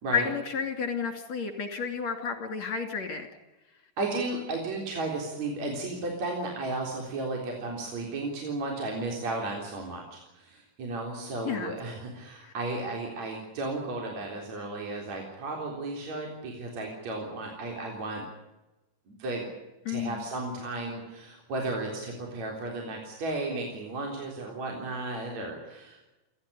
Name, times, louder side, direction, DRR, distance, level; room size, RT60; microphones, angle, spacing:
voice 1, 0.1-3.3 11.5-11.7 19.9-20.2, left 6 dB, 50° left, 6 dB, 3.8 m, -31 dB
voice 2, 4.0-18.3 19.1-19.5 19.9-26.1, right 2 dB, 50° right, 0 dB, 5.0 m, -34 dB
29.0 x 13.0 x 9.9 m, 1.0 s
omnidirectional pair, 4.0 m